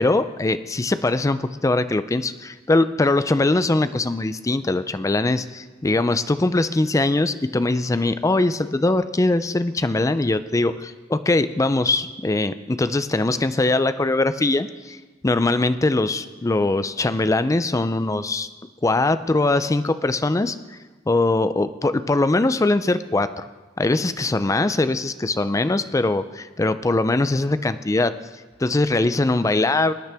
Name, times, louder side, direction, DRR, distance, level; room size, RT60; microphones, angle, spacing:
voice 1, 0.0-15.0 15.2-18.5 18.8-20.6 21.1-23.4 23.8-28.1 28.6-29.9, left 2 dB, 15° left, 12 dB, 0.4 m, -21 dB
21.0 x 9.5 x 3.5 m, 1.3 s
head